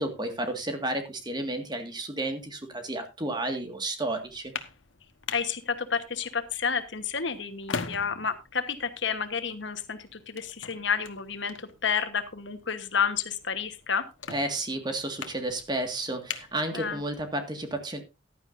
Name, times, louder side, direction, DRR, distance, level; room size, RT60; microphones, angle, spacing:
voice 1, 0.0-4.5 14.3-18.0, right 1 dB, 20° right, 6 dB, 1.9 m, -32 dB
sound 1, 4.2-17.3, left 5 dB, 85° left, 1.3 m, -43 dB
voice 2, 5.3-14.1 16.7-17.0, left 6 dB, 70° left, 10 dB, 1.3 m, -30 dB
15.0 x 11.5 x 2.7 m, 0.26 s
head